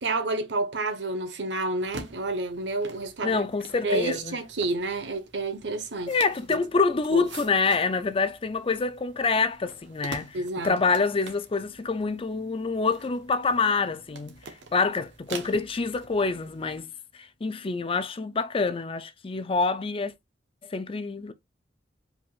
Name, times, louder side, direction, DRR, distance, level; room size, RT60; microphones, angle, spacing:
voice 1, 0.0-3.4 3.8-6.2 6.5-6.6 7.1-7.3 10.3-10.8, right 2 dB, 75° right, 1.0 m, -29 dB
sound 1, 1.8-16.8, right 4 dB, 90° right, 1.1 m, -46 dB
voice 2, 3.2-4.4 6.1-10.4 10.6-14.3 14.7-16.9 17.4-20.1 20.7-21.3, left 4 dB, 30° left, 0.5 m, -26 dB
5.1 x 3.7 x 2.4 m
head